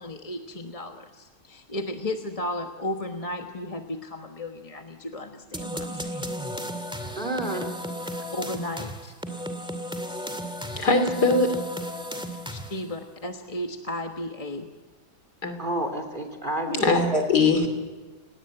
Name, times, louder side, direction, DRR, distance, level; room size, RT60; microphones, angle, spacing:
voice 1, 0.0-6.2 8.3-9.1 12.5-14.7, left 1 dB, 25° left, 4 dB, 1.2 m, -34 dB
sound 1, 5.5-12.9, equal, 5° right, 2.1 m, -34 dB
voice 2, 7.2-7.7 15.6-17.1, right 1 dB, 30° right, 4 dB, 3.3 m, -30 dB
voice 3, 10.8-11.5 15.4-15.5 16.7-17.7, left 3 dB, 75° left, 7 dB, 3.7 m, -21 dB
29.0 x 18.0 x 9.0 m, 1.3 s
omnidirectional pair, 1.7 m